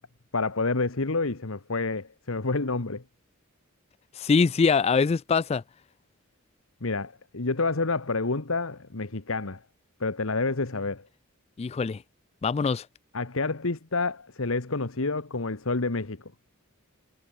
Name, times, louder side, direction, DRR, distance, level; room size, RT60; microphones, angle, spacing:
voice 1, 0.3-3.0 6.8-9.6 10.0-11.1 13.1-16.2, left 3 dB, 75° left, 1.4 m, -28 dB
voice 2, 4.2-5.6 11.6-12.0 12.4-12.9, left 5 dB, 30° left, 0.3 m, -23 dB
head